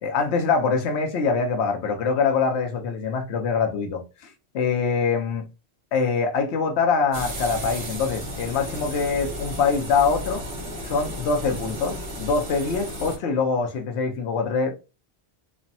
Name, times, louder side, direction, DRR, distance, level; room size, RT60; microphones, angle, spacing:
voice 1, 0.0-5.4 5.9-10.4 10.8-14.7, left 5 dB, 75° left, 0.9 m, -24 dB
sound 1, 7.1-13.2, equal, 65° right, 1.4 m, -33 dB
3.3 x 2.0 x 2.6 m
omnidirectional pair, 1.1 m